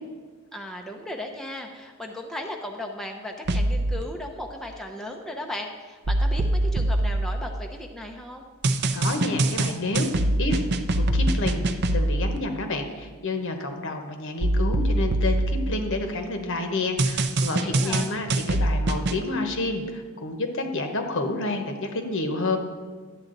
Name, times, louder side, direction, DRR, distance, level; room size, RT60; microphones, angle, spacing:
voice 1, 0.5-8.5 17.6-18.2, left 1 dB, ahead, 1 dB, 0.6 m, -36 dB
sound 1, 3.5-4.0 6.1-7.9 8.6-12.4 14.4-16.3 17.0-19.2, right 1 dB, 50° right, 0.5 m, -24 dB
voice 2, 8.9-10.1 10.4-10.7 11.1-11.6 11.9-22.6, left 2 dB, 60° left, 5 dB, 1.1 m, -29 dB
11.5 x 8.4 x 3.9 m, 1.5 s
head